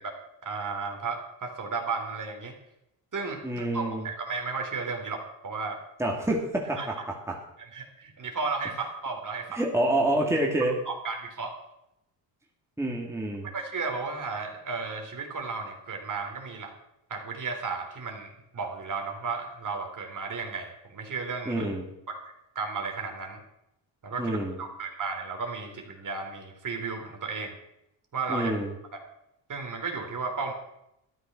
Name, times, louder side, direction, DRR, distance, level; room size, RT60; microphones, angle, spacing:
voice 1, 0.4-2.5 3.1-5.8 6.8-6.9 7.6-9.6 10.9-11.5 13.5-16.7 17.1-21.7 22.1-22.2 22.6-23.4 24.0-27.5 28.1-28.5 29.5-30.5, right 4 dB, 45° right, 2 dB, 3.7 m, -34 dB
voice 2, 3.4-4.1 6.0-7.0 9.5-10.7 12.8-13.5 21.5-21.8 24.2-24.6 28.3-28.7, right 1 dB, 5° right, -1 dB, 2.7 m, -27 dB
13.0 x 10.5 x 6.2 m, 0.82 s
cardioid pair, 85°, 43 cm